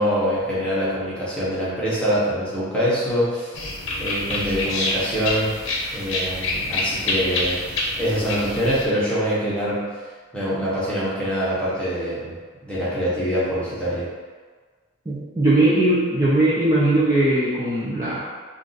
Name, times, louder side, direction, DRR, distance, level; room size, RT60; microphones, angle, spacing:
voice 1, 0.0-3.5 4.0-5.6 5.9-7.6 8.0-9.9 10.3-12.4 12.6-14.1, equal, 5° left, -9 dB, 0.7 m, -24 dB
sound 1, 3.5-8.8, left 2 dB, 90° left, 0.6 m, -27 dB
voice 2, 15.1-18.2, right 1 dB, 15° right, -10 dB, 0.4 m, -19 dB
2.5 x 2.3 x 3.8 m, 1.5 s
head